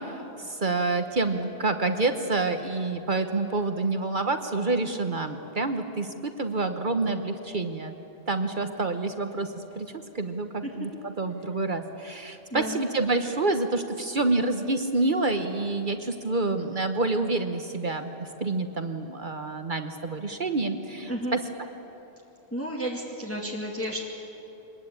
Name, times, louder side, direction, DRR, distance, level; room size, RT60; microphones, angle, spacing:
voice 1, 0.0-7.9 8.3-21.4, right 3 dB, 50° right, 7 dB, 1.1 m, -28 dB
voice 2, 22.5-24.0, equal, 10° left, -2 dB, 2.2 m, -32 dB
24.0 x 20.0 x 8.7 m, 3.0 s
omnidirectional pair, 1.1 m